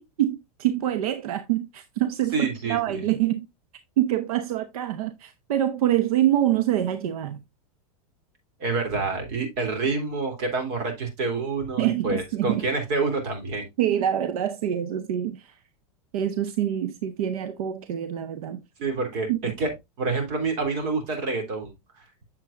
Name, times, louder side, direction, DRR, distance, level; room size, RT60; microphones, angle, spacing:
voice 1, 0.2-3.5 4.0-7.4 11.8-12.6 13.8-15.5 16.1-18.6 19.3-19.6, right 12 dB, 80° right, 0.9 m, -25 dB
voice 2, 2.3-3.1 8.6-13.7 18.8-19.3 19.6-19.7 20.0-21.7, right 3 dB, 50° right, 3.5 m, -27 dB
8.4 x 7.2 x 2.5 m
supercardioid pair, 140°, 19 cm